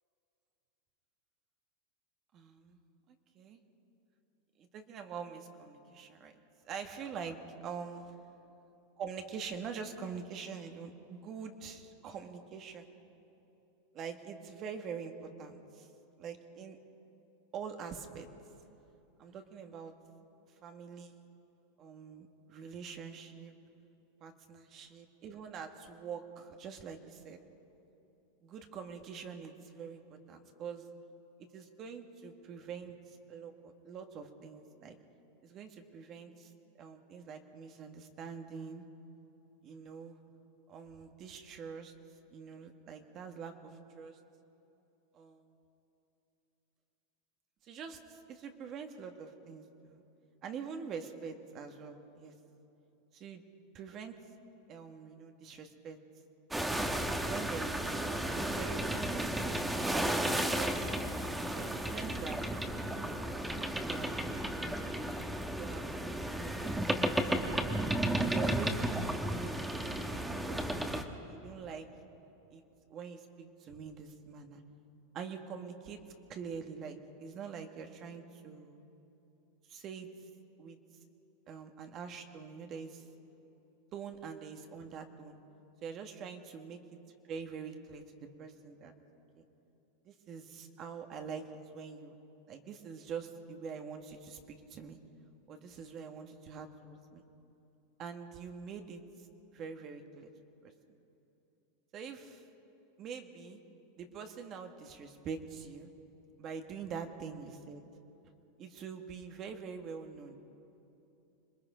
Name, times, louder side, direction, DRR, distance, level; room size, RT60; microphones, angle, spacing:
voice 1, 2.3-2.8 3.1-3.6 4.6-6.3 6.6-8.1 9.0-12.9 13.9-15.9 16.2-16.8 17.5-18.3 19.2-19.9 20.6-21.2 21.8-23.5 24.2-27.4 28.4-30.0 30.3-30.9 31.5-35.0 35.4-36.5 36.8-38.8 39.6-40.2 40.7-41.9 42.3-44.2 45.2-45.4 47.6-50.0 50.4-52.3 53.1-53.4 53.7-54.2 54.7-56.0 57.2-60.8 61.5-63.1 63.5-64.4 65.5-65.8 66.3-67.7 68.1-71.0 71.3-71.9 72.5-72.6 72.9-74.6 75.1-76.0 76.3-78.8 79.7-80.1 80.6-80.8 81.5-83.0 83.9-85.4 85.8-86.8 87.3-88.0 88.4-88.9 89.3-89.4 90.0-91.4 91.7-92.2 92.5-95.0 95.5-97.2 98.0-99.0 99.5-100.3 100.6-100.7 101.9-102.4 103.0-103.6 104.0-105.9 106.4-107.8 108.6-110.4, right 6 dB, 40° right, 5 dB, 1.6 m, -45 dB
sound 1, 56.5-71.0, right 1 dB, 5° right, 1.3 m, -33 dB
26.0 x 20.0 x 5.1 m, 2.9 s
supercardioid pair, 130°, 0 cm